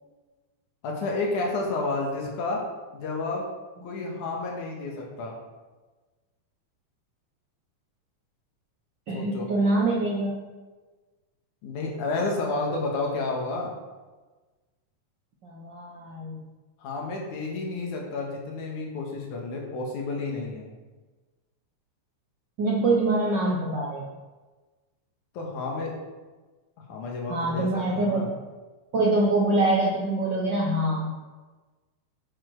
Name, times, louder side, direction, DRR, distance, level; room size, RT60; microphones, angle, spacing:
voice 1, 0.8-2.6 2.9-3.5 3.8-5.3 9.1-9.5 11.6-13.8 16.8-20.7 25.3-25.9 26.9-28.3, left 3 dB, 80° left, -1 dB, 3.0 m, -30 dB
voice 2, 9.1-10.3 15.4-16.4 22.6-24.1 27.3-28.3 28.9-31.1, right 2 dB, 65° right, -3 dB, 1.1 m, -24 dB
8.6 x 6.9 x 4.7 m, 1.3 s
omnidirectional pair, 3.5 m